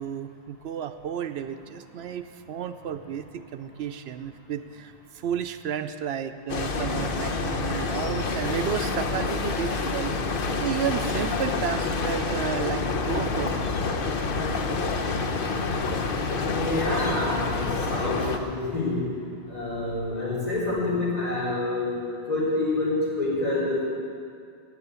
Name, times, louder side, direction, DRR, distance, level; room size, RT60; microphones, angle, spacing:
voice 1, 0.0-13.7, right 8 dB, 80° right, 9 dB, 0.8 m, -32 dB
sound 1, 6.5-18.4, left 3 dB, 60° left, 1.0 m, -28 dB
voice 2, 16.4-19.0 19.5-21.9 22.3-23.8, left 2 dB, 40° left, -6 dB, 4.4 m, -27 dB
16.0 x 6.6 x 8.1 m, 2.3 s
omnidirectional pair, 1.1 m